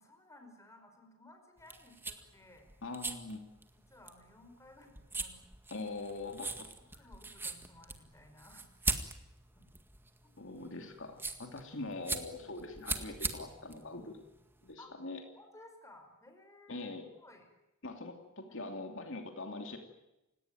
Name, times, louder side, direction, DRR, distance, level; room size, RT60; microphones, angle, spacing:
voice 1, 0.0-2.7 3.7-5.4 6.5-8.7 9.6-9.7 10.2-10.3 12.4-12.5 14.8-14.9 15.4-16.9 17.2-17.5 18.4-18.6, left 2 dB, 15° left, 5 dB, 5.4 m, -58 dB
sound 1, 1.6-14.7, right 3 dB, 10° right, 1.8 m, -41 dB
voice 2, 2.8-3.4 5.7-6.7 10.4-14.2 14.6-15.2 16.7-17.1 17.8-19.8, left 2 dB, 60° left, 4 dB, 2.9 m, -43 dB
30.0 x 17.5 x 9.3 m, 0.96 s
head